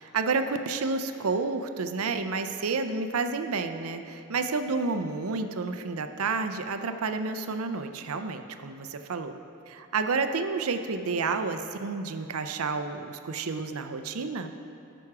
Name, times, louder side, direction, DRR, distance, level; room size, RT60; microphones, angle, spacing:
voice 1, 0.0-9.3 9.7-14.5, right 4 dB, 80° right, 8 dB, 0.6 m, -30 dB
14.5 x 6.1 x 4.8 m, 2.7 s
head